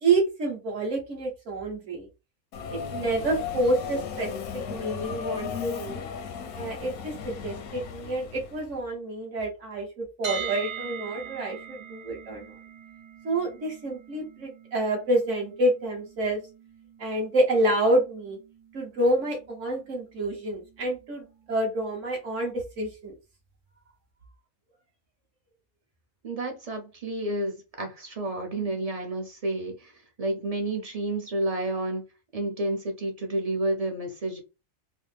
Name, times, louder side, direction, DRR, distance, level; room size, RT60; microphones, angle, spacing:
voice 1, 0.0-2.1 2.7-6.0 6.6-12.5 13.2-16.4 17.0-18.4 18.7-23.2, right 1 dB, 60° right, 1.7 m, -28 dB
Subway metro underground, 2.5-8.7, left 7 dB, 90° left, 1.2 m, -36 dB
sound 1, 10.2-22.2, right 7 dB, 85° right, 1.3 m, -43 dB
voice 2, 26.2-29.9 30.2-32.0 32.3-34.4, right 1 dB, 45° right, 0.5 m, -30 dB
4.0 x 2.1 x 3.4 m
omnidirectional pair, 1.5 m